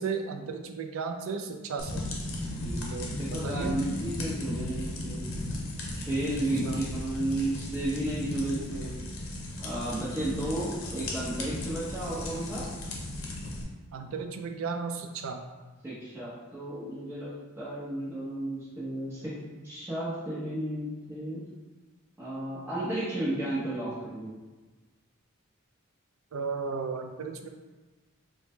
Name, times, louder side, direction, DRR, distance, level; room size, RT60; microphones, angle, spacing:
voice 1, 0.0-2.0 2.9-3.8 6.6-6.8 13.9-15.4 26.3-27.5, right 5 dB, 65° right, 6 dB, 0.4 m, -34 dB
sound 1, 1.8-13.6, left 1 dB, 65° left, 0.7 m, -36 dB
voice 2, 2.5-5.2 5.9-9.0 9.6-12.7 15.8-17.3 17.6-19.3 19.6-21.4 22.2-24.3, right 1 dB, 10° right, -11 dB, 0.8 m, -33 dB
4.8 x 2.1 x 3.1 m, 1.2 s
head